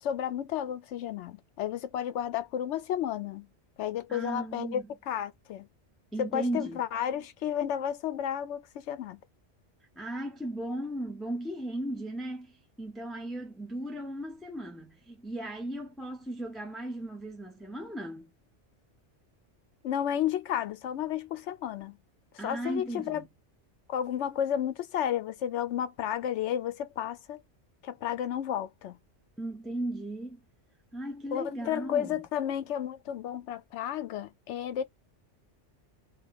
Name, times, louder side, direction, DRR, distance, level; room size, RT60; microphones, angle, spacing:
voice 1, 0.0-3.5 3.8-5.7 6.2-9.2 19.8-22.0 22.4-23.2 23.9-27.4 27.8-29.0 31.3-34.8, left 10 dB, 75° left, 0.9 m, -32 dB
voice 2, 4.1-4.9 6.1-6.8 10.0-12.5 12.8-18.3 22.4-23.2 29.4-30.4 30.9-32.2, right 1 dB, ahead, 0.4 m, -36 dB
3.0 x 2.3 x 3.4 m
omnidirectional pair, 1.2 m